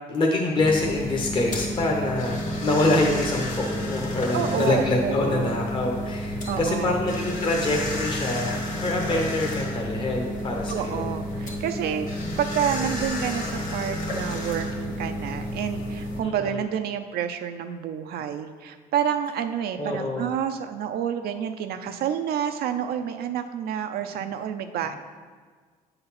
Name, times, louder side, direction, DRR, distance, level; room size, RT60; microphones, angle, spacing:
voice 1, 0.1-11.1 16.2-16.6 19.8-20.3, left 2 dB, 30° left, 0 dB, 0.8 m, -25 dB
sound 1, 0.6-16.2, left 1 dB, 50° left, 1.5 m, -31 dB
voice 2, 4.3-5.6 6.5-7.0 10.7-12.1 12.4-24.9, right 9 dB, 65° right, 7 dB, 0.5 m, -29 dB
7.8 x 4.0 x 5.7 m, 1.5 s
cardioid pair, 110°, 17 cm